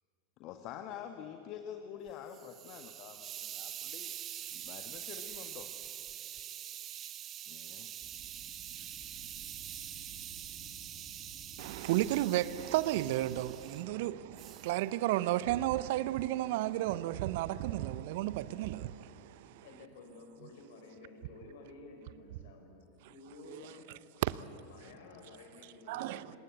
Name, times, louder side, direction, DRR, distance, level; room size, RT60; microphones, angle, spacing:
voice 1, 0.4-4.1 4.5-5.7 7.5-7.9, left 9 dB, 45° left, 1.5 m, -47 dB
Hiss, 2.1-13.8 14.4-14.7, right 11 dB, 35° right, 1.0 m, -45 dB
Wind, 8.0-14.9, right 2 dB, 5° right, 7.6 m, -56 dB
voice 2, 11.6-19.6 23.5-23.6 24.2-24.4 25.9-26.3, right 15 dB, 55° right, 0.7 m, -33 dB
voice 3, 19.6-22.7 23.1-26.4, left 3 dB, 60° left, 5.3 m, -53 dB
28.5 x 19.5 x 8.3 m
figure-of-eight pair, 90°, 0 cm